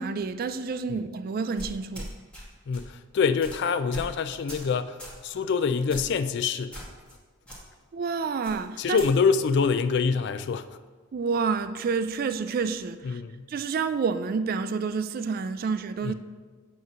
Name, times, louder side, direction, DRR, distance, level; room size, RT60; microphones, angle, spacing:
voice 1, 0.0-2.1 7.9-9.0 11.1-13.2 13.5-16.1, right 5 dB, 45° right, 0.3 m, -29 dB
sound 1, 1.6-2.4 2.7-2.9 3.4-3.6 3.9-4.1 4.5-4.7 5.0-5.2 5.9-6.2 6.7-7.2 7.5-7.6 8.4-9.1, equal, 5° left, 1.6 m, -40 dB
voice 2, 2.7-5.0 5.2-6.8 8.8-10.7 13.0-13.5 16.0-16.1, left 5 dB, 55° left, 0.3 m, -25 dB
8.1 x 3.1 x 6.2 m
head